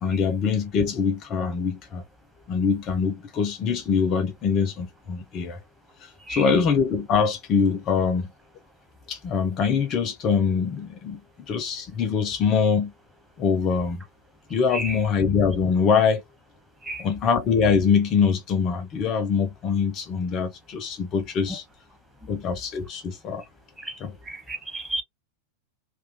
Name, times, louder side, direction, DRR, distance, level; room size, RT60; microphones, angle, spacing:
voice 1, 0.0-2.0 2.5-5.6 6.0-8.3 9.1-11.2 11.5-12.9 13.4-14.0 14.5-16.2 17.0-21.6 22.3-23.4 24.0-24.1, left 6 dB, 35° left, 0.5 m, -23 dB
voice 2, 6.2-6.5 14.7-15.0 16.8-17.1 22.2-22.3 23.8-25.0, right 1 dB, 10° right, 0.9 m, -34 dB
2.3 x 2.3 x 2.6 m
figure-of-eight pair, 90°, 0 cm